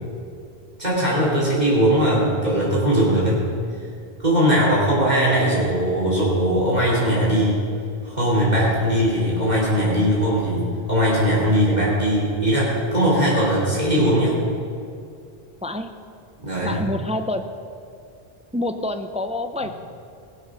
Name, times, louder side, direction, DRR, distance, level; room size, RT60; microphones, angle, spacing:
voice 1, 0.8-3.4 4.2-7.6 8.0-14.4 16.4-16.8, equal, 45° right, -7 dB, 3.1 m, -20 dB
voice 2, 15.6-15.9 16.6-17.4 18.5-19.7, left 1 dB, 10° right, 8 dB, 0.3 m, -27 dB
18.0 x 7.8 x 6.1 m, 2.5 s
omnidirectional pair, 1.0 m